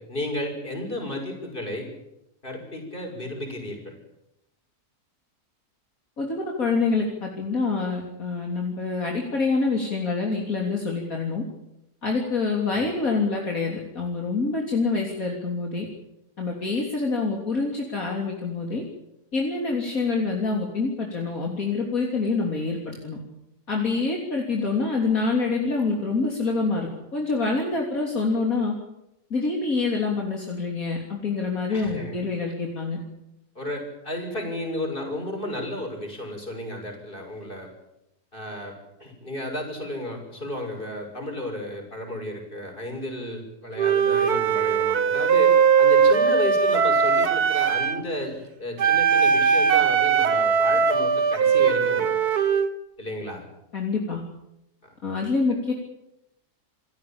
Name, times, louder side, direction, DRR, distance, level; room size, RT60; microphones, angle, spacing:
voice 1, 0.0-1.9 2.4-3.9 12.7-12.9 31.7-32.2 33.5-37.7 38.3-38.7 39.0-52.2 53.0-53.4 54.8-54.9, left 1 dB, 30° left, 3 dB, 6.7 m, -33 dB
voice 2, 6.2-11.4 12.0-15.9 16.4-18.8 19.3-23.2 23.7-28.7 29.3-33.0 53.7-54.2 55.0-55.7, left 4 dB, 60° left, 0 dB, 3.7 m, -26 dB
Wind instrument woodwind instrument, 43.8-48.0 48.8-52.7, right 6 dB, 70° right, 2.0 m, -20 dB
27.5 x 17.0 x 8.8 m, 0.87 s
omnidirectional pair, 1.7 m